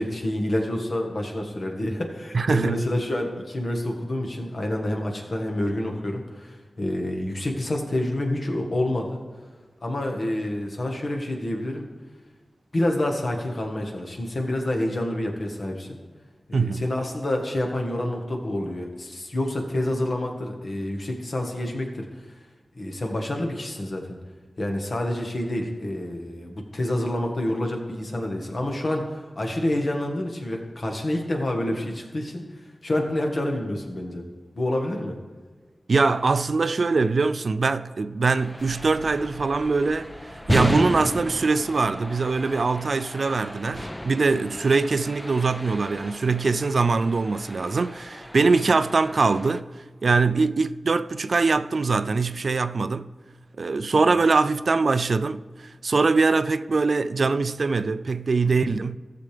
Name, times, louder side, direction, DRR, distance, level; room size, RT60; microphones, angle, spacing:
voice 1, 0.0-9.2 9.8-11.9 12.7-16.0 16.5-22.0 22.7-24.2 24.6-32.4 32.8-34.2 34.5-35.2 58.6-58.7, left 1 dB, 65° left, 1.5 m, -28 dB
voice 2, 2.3-2.8 16.5-16.9 35.9-40.1 40.5-53.1 53.6-59.0, right 4 dB, 70° right, 0.3 m, -23 dB
sound 1, 38.2-49.6, equal, 10° left, 0.4 m, -33 dB
Explosion, 38.6-44.0, left 1 dB, 90° left, 2.5 m, -48 dB
14.5 x 6.7 x 3.4 m
cardioid pair, 45°, 0 cm